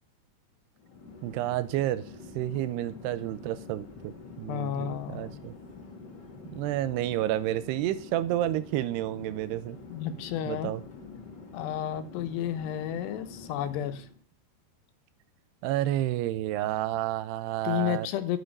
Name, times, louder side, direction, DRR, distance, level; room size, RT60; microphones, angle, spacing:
Chatter / Fixed-wing aircraft airplane, 0.8-14.2, left 4 dB, 45° left, 1.4 m, -47 dB
voice 1, 1.2-2.1 2.4-5.6 6.5-9.8 10.5-10.8 15.6-18.1, right 14 dB, 85° right, 15 dB, 2.7 m, -30 dB
voice 2, 4.5-5.4 9.9-10.7 11.5-14.1 17.6-18.4, left 11 dB, 80° left, 9 dB, 3.1 m, -32 dB
11.5 x 6.4 x 5.3 m, 0.41 s
omnidirectional pair, 4.8 m